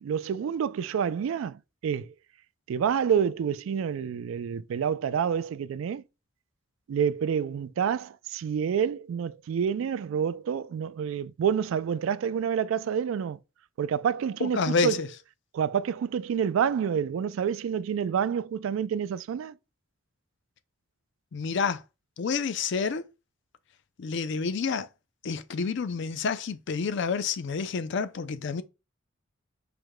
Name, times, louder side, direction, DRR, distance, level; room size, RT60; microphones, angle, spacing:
voice 1, 0.0-2.1 2.7-6.0 6.9-13.4 13.8-15.0 15.5-19.5, right 7 dB, 75° right, 0.3 m, -28 dB
voice 2, 14.4-15.1 21.3-21.8 22.2-23.1 24.0-24.9 25.2-28.6, left 5 dB, 60° left, 0.4 m, -29 dB
4.9 x 2.2 x 4.6 m
head